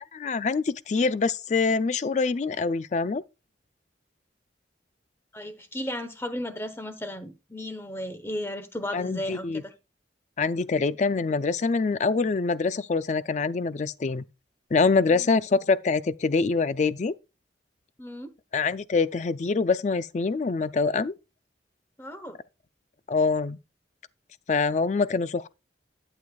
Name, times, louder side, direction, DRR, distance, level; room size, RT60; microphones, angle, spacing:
voice 1, 0.1-3.2 8.9-9.6 10.4-14.2 14.7-17.1 18.5-21.1 23.1-23.6 24.5-25.5, left 4 dB, 40° left, 0.3 m, -25 dB
voice 2, 5.3-9.7 15.0-15.3 18.0-18.3 22.0-22.4, left 1 dB, 15° left, 0.9 m, -35 dB
11.5 x 7.8 x 2.3 m
head